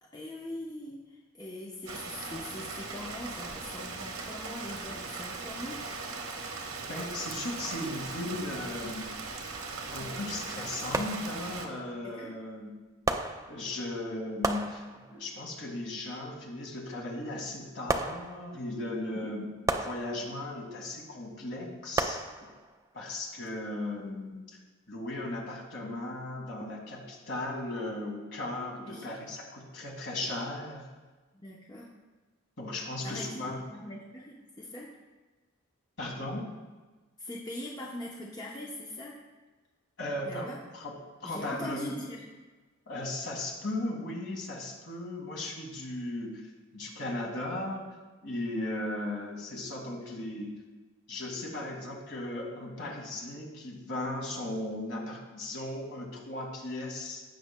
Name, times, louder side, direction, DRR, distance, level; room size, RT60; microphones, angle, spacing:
voice 1, 0.0-5.8 12.0-12.3 19.1-19.3 28.8-29.1 31.4-31.9 33.0-33.4 33.7-34.9 37.2-39.1 40.2-40.6 41.2-42.3, left 1 dB, 20° left, -3 dB, 0.7 m, -41 dB
Rain, 1.9-11.7, right 4 dB, 90° right, 1.1 m, -39 dB
voice 2, 6.8-9.1 9.9-12.7 13.5-22.2 22.9-24.6 24.9-30.9 32.6-33.6 36.0-36.5 40.0-41.0 41.2-41.9 42.9-46.4 46.7-47.8 48.2-50.5 51.1-57.2, left 1 dB, 55° left, -1 dB, 1.9 m, -37 dB
sound 1, 9.5-9.6 10.9-11.7 13.1-14.0 14.4-15.4 17.9-18.8 19.7-20.6 22.0-22.9 23.5-23.6, right 2 dB, 15° right, 0.3 m, -34 dB
16.5 x 5.9 x 2.2 m, 1.3 s
head